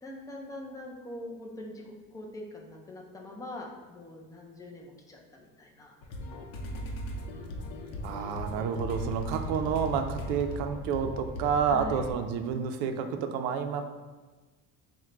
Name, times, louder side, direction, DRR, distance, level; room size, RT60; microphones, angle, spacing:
voice 1, 0.0-6.0 11.7-12.0, left 1 dB, 10° left, -1 dB, 0.3 m, -43 dB
sound 1, 6.0-12.1, left 1 dB, 65° left, 0.7 m, -38 dB
voice 2, 8.0-13.8, right 7 dB, 80° right, 7 dB, 0.5 m, -29 dB
4.5 x 2.2 x 3.7 m, 1.3 s
cardioid pair, 150°, 35 cm